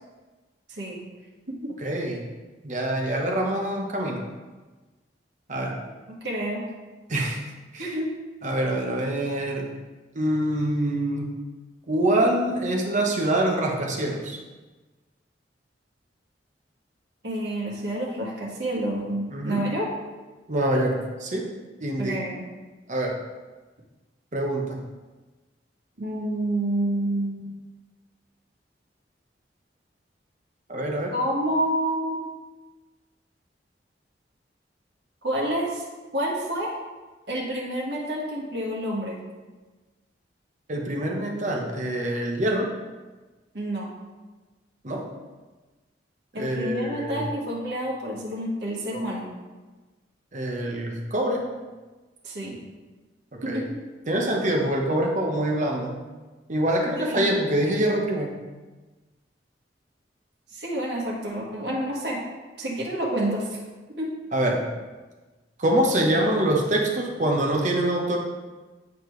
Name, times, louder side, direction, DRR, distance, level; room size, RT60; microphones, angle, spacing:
voice 1, 0.7-1.0 1.5-1.7 6.1-6.6 7.8-8.1 17.2-19.9 22.0-22.4 26.0-27.5 31.1-32.3 35.2-35.8 36.1-36.7 37.3-39.2 43.5-43.9 46.3-49.3 52.2-52.6 53.4-53.8 56.9-57.4 60.5-62.2 62.6-63.6 64.0-64.1, right 1 dB, 65° right, -4 dB, 1.6 m, -28 dB
voice 2, 1.8-2.3 2.6-4.3 5.5-5.7 7.1-7.4 7.7-7.9 8.4-9.7 10.1-11.3 11.9-14.4 19.3-19.6 20.5-21.5 21.8-22.2 22.9-23.2 24.3-24.8 30.7-31.1 40.7-42.7 44.8-45.1 46.4-47.3 50.3-51.5 53.5-53.6 54.1-55.9 56.5-58.4 64.3-64.7 65.6-68.2, right 1 dB, 45° right, 0 dB, 1.0 m, -25 dB
8.3 x 4.3 x 3.2 m, 1.3 s
head